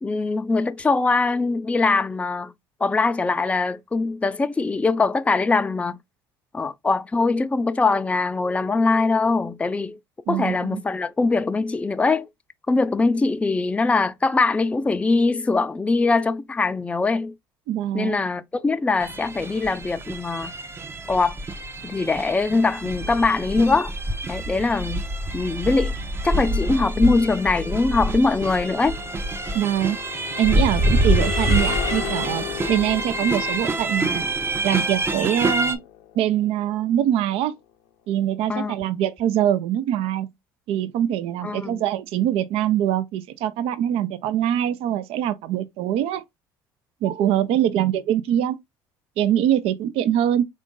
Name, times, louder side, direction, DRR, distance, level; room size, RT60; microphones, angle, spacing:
voice 1, 0.0-2.5 2.8-6.0 6.5-10.0 10.3-12.3 12.7-17.3 17.9-20.5 21.1-21.4 21.8-23.9 24.3-25.0 25.3-25.9 26.2-29.0 38.5-38.7 41.4-41.8, left 3 dB, 10° left, 0.4 m, -22 dB
voice 2, 10.3-10.8 17.7-18.3 29.5-30.0 30.4-34.3 34.6-35.8 36.2-37.5 38.1-40.3 40.7-46.2 47.0-48.6 49.2-50.4, right 11 dB, 65° right, 0.5 m, -23 dB
sound 1, 19.0-35.8, right 1 dB, 25° right, 0.6 m, -26 dB
sound 2, 21.5-37.3, left 11 dB, 75° left, 0.6 m, -38 dB
3.7 x 2.5 x 3.7 m
supercardioid pair, 75°, 11 cm